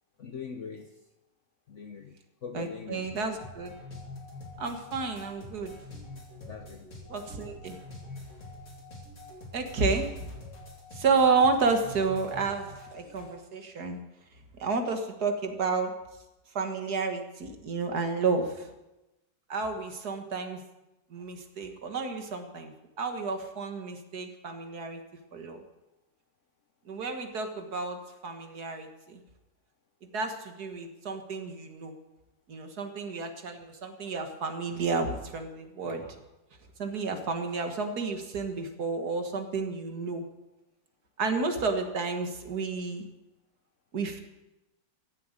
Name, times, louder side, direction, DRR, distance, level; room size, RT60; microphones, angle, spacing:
voice 1, 0.2-0.9 1.7-2.1 2.4-3.2 6.5-6.9, left 6 dB, 55° left, 7 dB, 0.9 m, -41 dB
voice 2, 2.5-3.7 4.6-5.7 6.5-6.6 7.1-7.8 9.5-10.3 10.9-14.0 14.6-16.0 16.6-18.7 19.5-20.6 21.1-25.0 25.3-25.6 26.9-29.2 30.0-31.9 32.5-36.2 36.8-40.3 41.2-43.0 43.9-44.2, right 4 dB, 60° right, 6 dB, 2.0 m, -31 dB
sound 1, 3.0-13.3, left 2 dB, 40° left, 3.3 m, -46 dB
14.5 x 7.8 x 9.0 m, 0.99 s
omnidirectional pair, 2.0 m